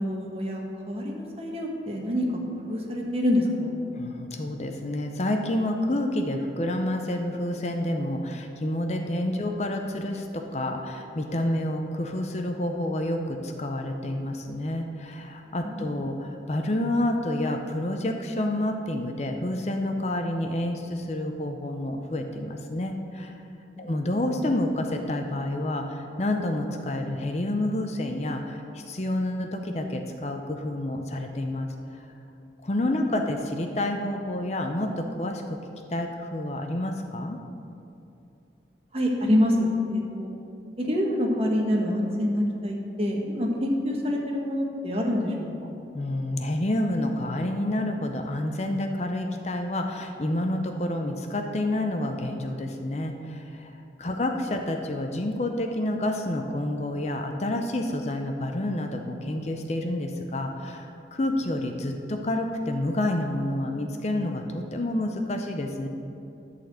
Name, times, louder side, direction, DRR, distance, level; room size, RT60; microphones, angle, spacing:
voice 1, 0.0-2.3 2.7-3.7 15.6-15.9 23.8-23.9 38.9-40.3 40.8-45.7, left 1 dB, 35° right, 0 dB, 1.2 m, -26 dB
voice 2, 3.9-23.3 23.8-32.0 32.6-35.6 35.9-37.4 45.9-53.7 54.0-60.9 61.1-65.9, left 1 dB, 40° left, 4 dB, 0.6 m, -29 dB
11.0 x 4.2 x 7.7 m, 2.7 s
head